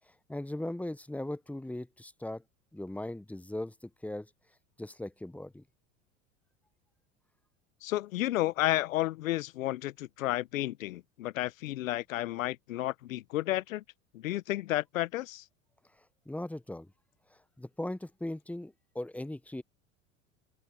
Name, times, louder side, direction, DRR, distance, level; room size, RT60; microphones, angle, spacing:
voice 1, 0.3-2.4 2.7-4.3 4.8-5.6 16.3-16.9 17.6-19.6, left 1 dB, 5° left, 1.1 m, -38 dB
voice 2, 7.8-13.8 14.1-15.4, left 15 dB, 75° left, 1.3 m, -32 dB
open air
hypercardioid pair, 80°, 40 cm